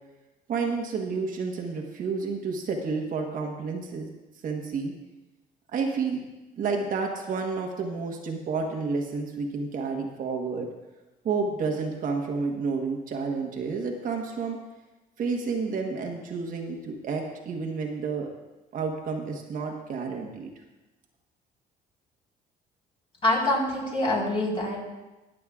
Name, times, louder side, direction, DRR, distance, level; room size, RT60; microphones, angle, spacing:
voice 1, 0.5-4.1 4.4-4.9 5.7-6.2 6.6-10.7 11.2-14.6 15.2-18.3 18.7-20.5, right 4 dB, 55° right, 2 dB, 1.3 m, -30 dB
voice 2, 23.2-24.8, left 1 dB, 30° left, -3 dB, 4.1 m, -25 dB
22.0 x 7.6 x 2.4 m, 1.1 s
cardioid pair, 110°, 17 cm